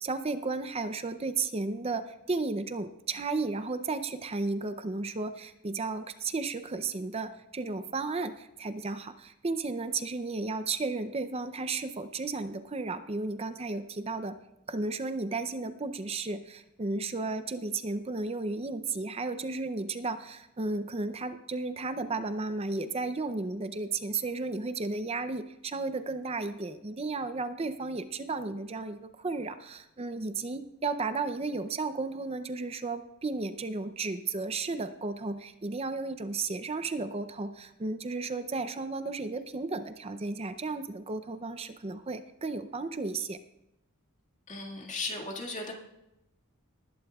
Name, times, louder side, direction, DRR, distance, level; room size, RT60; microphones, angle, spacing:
voice 1, 0.0-14.4 14.7-43.4, right 3 dB, 25° right, 10 dB, 0.5 m, -34 dB
voice 2, 44.5-45.7, left 3 dB, 35° left, 1 dB, 2.0 m, -36 dB
19.5 x 11.5 x 2.4 m, 0.89 s
head